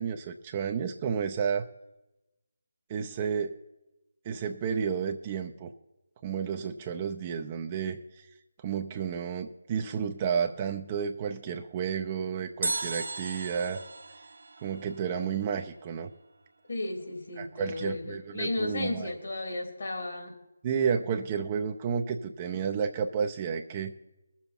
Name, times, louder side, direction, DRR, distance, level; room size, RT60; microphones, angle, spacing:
voice 1, 0.0-1.6 2.9-3.6 4.2-5.7 6.2-8.3 8.6-13.8 14.6-16.1 17.4-19.1 20.6-23.9, right 7 dB, 30° right, 5 dB, 0.6 m, -31 dB
sound 1, 12.6-15.7 16.0-16.1, right 3 dB, 75° right, 1.1 m, -36 dB
voice 2, 16.7-20.4, left 2 dB, 70° left, 2 dB, 3.1 m, -34 dB
19.5 x 7.1 x 4.4 m, 0.97 s
figure-of-eight pair, 155°, 0 cm